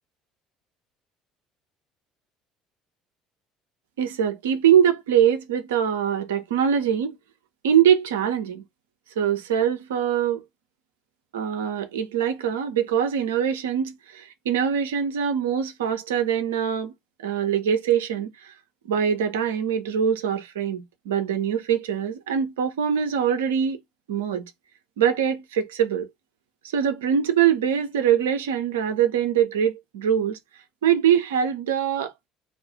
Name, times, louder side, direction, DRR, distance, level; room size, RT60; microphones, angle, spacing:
voice 1, 4.0-7.1 7.6-8.6 9.2-10.4 11.3-16.9 17.2-18.5 18.8-23.8 24.1-24.5 25.0-26.1 26.7-30.4 30.8-32.1, right 8 dB, 75° right, 0.5 m, -23 dB
2.3 x 2.1 x 3.9 m
figure-of-eight pair, 60°, 0 cm